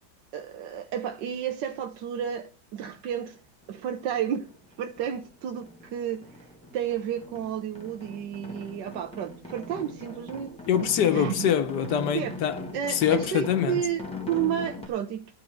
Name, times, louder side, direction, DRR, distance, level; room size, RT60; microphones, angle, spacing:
voice 1, 0.3-3.4 3.7-4.5 4.8-6.5 6.7-10.6 11.0-11.5 12.1-12.3 12.7-15.2, right 9 dB, 85° right, 1.4 m, -31 dB
sound 1, 3.7-3.8 4.1-5.3 5.6-14.9, left 2 dB, 5° left, 1.5 m, -41 dB
voice 2, 10.7-12.6 12.9-13.8, left 9 dB, 75° left, 1.6 m, -24 dB
12.5 x 4.8 x 7.8 m
omnidirectional pair, 1.9 m